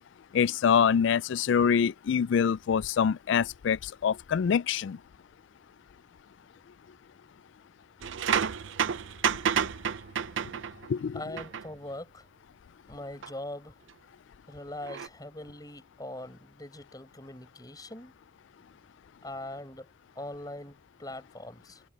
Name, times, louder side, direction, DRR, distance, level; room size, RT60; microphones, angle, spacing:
voice 1, 0.3-5.0 10.9-11.2, left 7 dB, 70° left, 0.3 m, -25 dB
sound 1, 8.0-10.9 11.4-11.7 13.2-13.3 14.8-15.1, right 7 dB, 75° right, 0.6 m, -30 dB
voice 2, 11.1-12.3 12.9-13.8 14.5-18.1 19.2-19.9 20.2-21.8, left 1 dB, 20° left, 5.5 m, -41 dB
head